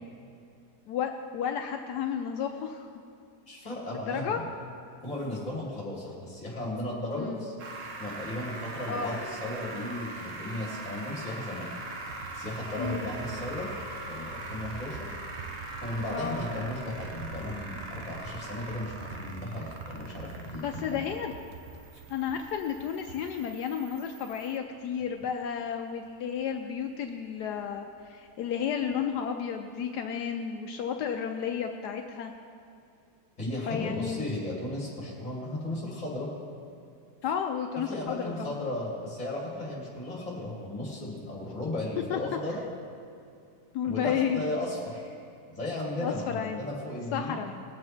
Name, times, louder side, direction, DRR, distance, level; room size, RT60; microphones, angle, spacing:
voice 1, 0.9-2.9 3.9-4.4 7.2-7.5 8.9-9.2 12.8-13.4 16.1-16.4 20.6-21.3 22.1-32.3 33.7-34.2 37.2-38.5 42.1-42.2 43.7-44.4 46.0-46.6 47.1-47.6, left 8 dB, 75° left, 5 dB, 1.2 m, -32 dB
voice 2, 3.5-4.4 5.0-7.5 8.0-11.7 12.3-13.7 14.1-15.2 15.8-21.0 33.4-36.3 37.9-42.6 43.9-45.1 45.5-47.4, left 1 dB, 25° left, -4 dB, 2.7 m, -35 dB
sound 1, 7.6-24.6, right 2 dB, 55° right, 1.3 m, -42 dB
sound 2, 12.0-24.5 24.8-24.9 25.1-26.9 27.3-27.4 27.7-28.5, right 6 dB, 75° right, 1.2 m, -47 dB
19.0 x 7.5 x 4.6 m, 2.5 s
omnidirectional pair, 1.8 m